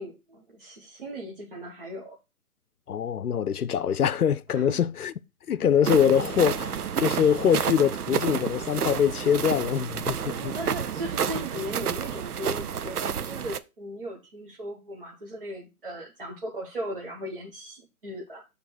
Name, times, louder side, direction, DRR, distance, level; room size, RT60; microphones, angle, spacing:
voice 1, 0.0-2.2 4.5-4.8 10.2-18.5, right 1 dB, 40° right, 1.2 m, -37 dB
voice 2, 2.9-5.1 5.5-10.6, left 8 dB, 85° left, 0.7 m, -24 dB
sound 1, 5.8-13.6, right 8 dB, 85° right, 0.7 m, -30 dB
6.7 x 3.3 x 6.1 m
hypercardioid pair, 175°, 44 cm